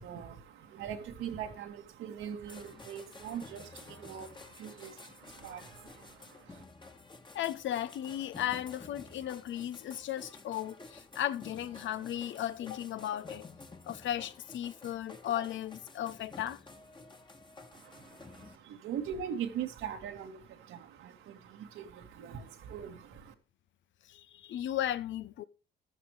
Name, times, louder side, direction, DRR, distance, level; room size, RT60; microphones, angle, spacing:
voice 1, 0.0-6.6 17.7-23.3, right 8 dB, 90° right, 2.1 m, -42 dB
sound 1, 2.5-18.6, left 3 dB, 25° left, 1.6 m, -52 dB
voice 2, 7.3-13.5 13.9-16.6 24.1-25.4, left 12 dB, 70° left, 0.8 m, -36 dB
14.5 x 12.5 x 3.2 m
cardioid pair, 90°, 20 cm